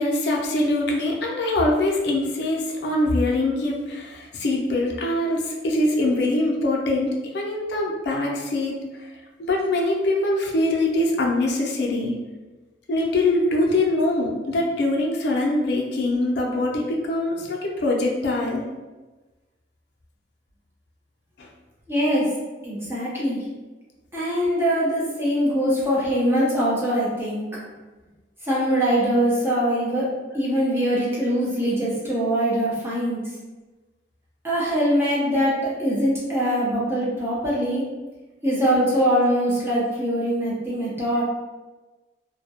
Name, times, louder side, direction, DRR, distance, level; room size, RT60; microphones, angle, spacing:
voice 1, 0.0-8.8 9.4-12.1 12.9-18.6 21.4-21.5, left 2 dB, 65° left, -1 dB, 0.5 m, -23 dB
voice 2, 21.9-22.3 22.6-23.4 24.1-27.4 28.4-30.1 30.3-33.2 34.4-37.8 38.4-41.2, equal, 15° right, -7 dB, 0.5 m, -22 dB
2.2 x 2.0 x 2.7 m, 1.2 s
head